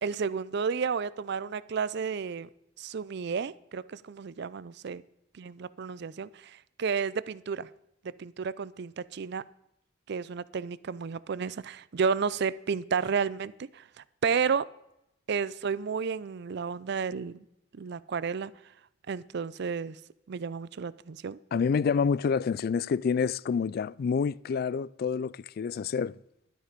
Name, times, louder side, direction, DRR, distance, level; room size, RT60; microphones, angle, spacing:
voice 1, 0.0-2.5 2.8-5.0 5.3-7.7 8.0-9.4 10.1-13.9 14.2-14.7 15.3-17.4 17.7-18.5 19.1-20.0 20.3-21.4, right 6 dB, 60° right, 0.5 m, -32 dB
voice 2, 21.5-26.1, left 6 dB, 55° left, 0.3 m, -28 dB
12.0 x 10.0 x 5.1 m
head